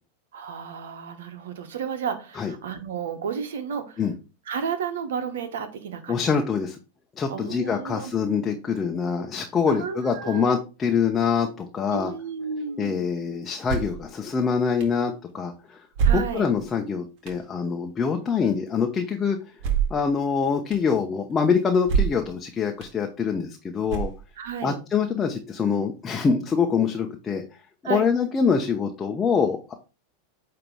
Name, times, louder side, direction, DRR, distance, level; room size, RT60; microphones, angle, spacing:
voice 1, 0.3-4.0 4.5-6.3 7.3-8.1 9.7-10.5 11.9-13.0 16.0-16.4 24.4-24.8 27.8-28.1, right 6 dB, 75° right, 9 dB, 1.2 m, -32 dB
voice 2, 6.1-6.8 7.2-12.1 12.8-15.8 16.1-19.4 19.9-24.1 24.6-27.4 27.9-29.7, left 6 dB, 25° left, 3 dB, 0.9 m, -25 dB
sound 1, 13.7-14.0 14.8-14.9 15.9-16.6 17.3-17.4 19.6-20.1 20.7-20.8 21.8-22.3 22.8-22.9 23.9-24.4, right 7 dB, 55° right, 1.8 m, -25 dB
8.7 x 3.0 x 4.7 m, 0.31 s
hypercardioid pair, 100°, 0 cm